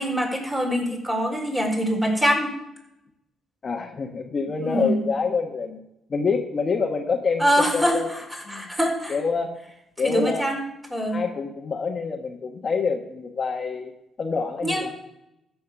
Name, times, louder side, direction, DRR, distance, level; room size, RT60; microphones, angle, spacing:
voice 1, 0.0-2.5 4.6-5.1 7.4-9.2 10.0-10.6 10.9-11.2 14.6-14.9, equal, 10° right, 1 dB, 4.2 m, -24 dB
voice 2, 3.6-5.8 6.1-8.1 8.4-8.6 9.1-9.5 10.0-10.4 11.1-13.9 14.2-14.9, left 5 dB, 40° left, 2 dB, 1.3 m, -26 dB
14.0 x 7.1 x 6.0 m, 0.85 s
cardioid pair, 90°, 0 cm